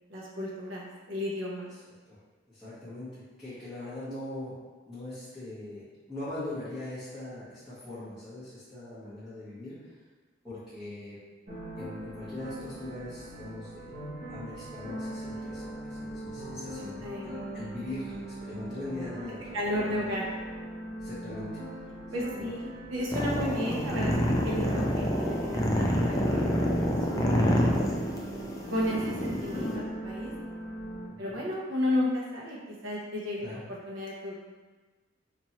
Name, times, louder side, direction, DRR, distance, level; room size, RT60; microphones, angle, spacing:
voice 1, 0.1-1.7 17.0-17.3 19.5-20.2 22.1-24.1 24.4-27.9 28.7-30.3 31.2-32.6 32.8-34.3, left 1 dB, 75° right, -4 dB, 0.8 m, -33 dB
voice 2, 2.5-4.5 4.8-9.8 10.4-11.2 11.8-20.0 21.0-21.5 22.3-22.5 31.1-31.4 33.4-33.6, left 1 dB, 5° right, -16 dB, 1.2 m, -41 dB
sound 1, 11.5-31.1, right 1 dB, 45° right, 1.5 m, -40 dB
sound 2, 23.1-29.8, equal, 15° left, 0.4 m, -27 dB
4.3 x 3.0 x 2.9 m, 1.3 s
head